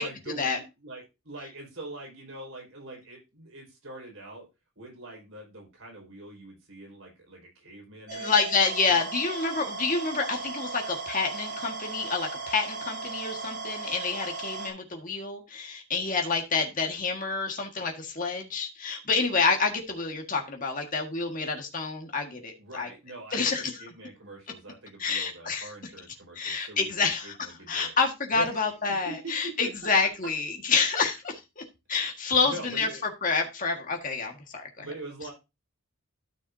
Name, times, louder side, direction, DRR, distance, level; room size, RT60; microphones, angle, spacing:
voice 1, 0.0-4.5 4.8-8.3 8.8-9.0 22.6-27.9 28.3-29.5 32.4-33.0 34.8-35.3, right 2 dB, 60° right, 4.8 m, -43 dB
voice 2, 8.1-22.9 23.3-23.6 25.0-25.7 26.3-27.3 27.7-31.6 31.9-32.9 33.2-34.9, left 4 dB, 35° left, 1.7 m, -28 dB
sound 1, 8.1-14.7, right 4 dB, 45° right, 3.0 m, -37 dB
12.5 x 6.4 x 2.7 m
head